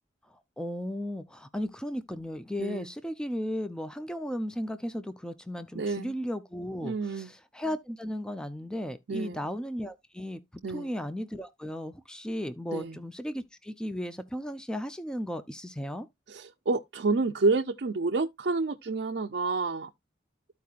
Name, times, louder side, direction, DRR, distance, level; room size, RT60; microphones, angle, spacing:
voice 1, 0.3-16.1, equal, 5° left, 0.4 m, -35 dB
voice 2, 5.7-6.1 6.8-7.3 9.1-9.4 10.6-10.9 12.7-13.0 16.3-19.9, right 3 dB, 60° right, 0.5 m, -29 dB
14.0 x 4.6 x 2.4 m
head